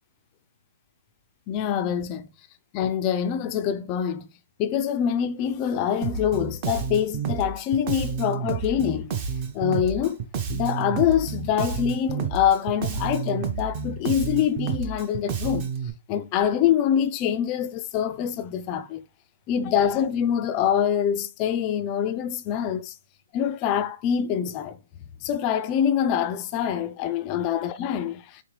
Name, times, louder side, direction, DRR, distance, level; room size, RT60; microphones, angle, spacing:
voice 1, 1.5-2.2 2.7-4.3 4.6-9.2 9.5-10.2 10.5-15.7 16.1-19.0 19.5-22.8 23.3-24.8 25.2-28.2, left 9 dB, 25° left, 0.4 m, -25 dB
Bass guitar, 6.0-15.9, right 6 dB, 30° right, 0.6 m, -30 dB
3.6 x 3.4 x 3.2 m
hypercardioid pair, 155°, 0 cm